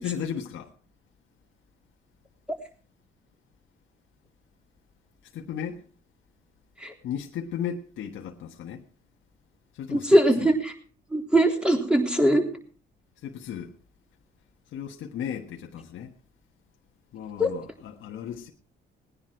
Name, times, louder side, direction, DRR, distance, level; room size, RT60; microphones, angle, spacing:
voice 1, 0.0-0.7 5.3-5.8 7.0-8.8 9.7-10.5 13.2-13.7 14.7-16.1 17.1-18.5, left 8 dB, 80° left, 1.5 m, -35 dB
voice 2, 9.9-10.7 11.1-12.4 17.4-17.5, right 1 dB, 5° right, 3.6 m, -21 dB
19.0 x 10.0 x 4.5 m
cardioid pair, 90°, 20 cm